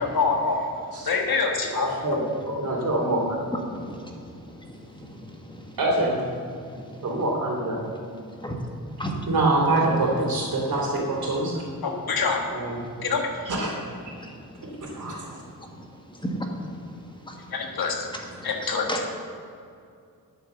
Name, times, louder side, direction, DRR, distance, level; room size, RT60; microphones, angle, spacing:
voice 1, 0.0-0.6 1.1-1.9 11.8-12.4 13.0-13.2 17.5-18.0 18.4-18.9, left 4 dB, 90° left, 2 dB, 1.6 m, -25 dB
voice 2, 1.7-3.4 7.0-7.8 12.5-12.8 13.4-13.7 14.1-14.2 14.9-15.2, right 1 dB, 60° right, -1 dB, 2.8 m, -28 dB
voice 3, 5.0-5.6 6.7-6.9 8.4-8.5 9.0-9.1 12.1-12.2 15.6-15.7 16.2-16.4 17.2-17.4 18.1-18.2 18.6-19.1, equal, 15° left, 1 dB, 1.4 m, -33 dB
voice 4, 5.8-6.2 9.3-11.5, right 2 dB, 80° right, -2 dB, 3.3 m, -23 dB
9.6 x 8.3 x 6.9 m, 2.4 s
wide cardioid pair, 130°, 35 cm